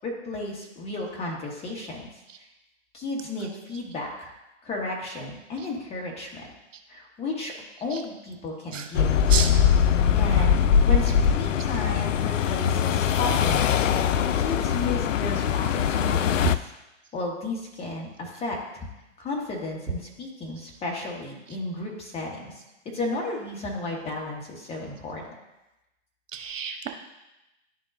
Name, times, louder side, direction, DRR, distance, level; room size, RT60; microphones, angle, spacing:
voice 1, 0.0-2.1 2.9-4.3 4.6-6.5 6.9-7.5 7.8-9.2 10.2-10.6 10.8-13.6 13.9-16.4 17.1-18.8 19.2-22.5 22.8-25.2, left 2 dB, 15° left, -1 dB, 1.3 m, -33 dB
sound 1, 8.9-16.6, left 8 dB, 75° left, 0.5 m, -22 dB
voice 2, 26.3-26.9, right 7 dB, 80° right, 5 dB, 0.9 m, -30 dB
11.0 x 3.7 x 2.6 m, 0.96 s
hypercardioid pair, 125°, 38 cm